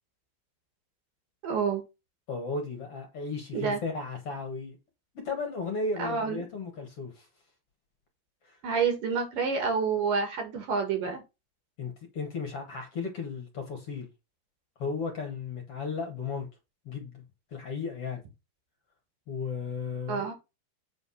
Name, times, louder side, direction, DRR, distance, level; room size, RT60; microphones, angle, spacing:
voice 1, 1.4-1.8 3.5-3.8 6.0-6.4 8.6-11.2 20.1-20.3, right 5 dB, 60° right, 3.5 m, -28 dB
voice 2, 2.3-4.8 5.1-7.3 8.4-8.6 11.8-14.1 14.8-16.5 16.9-17.2 17.5-18.2 19.3-20.2, left 4 dB, 45° left, 2.7 m, -35 dB
8.7 x 4.0 x 5.6 m
omnidirectional pair, 4.5 m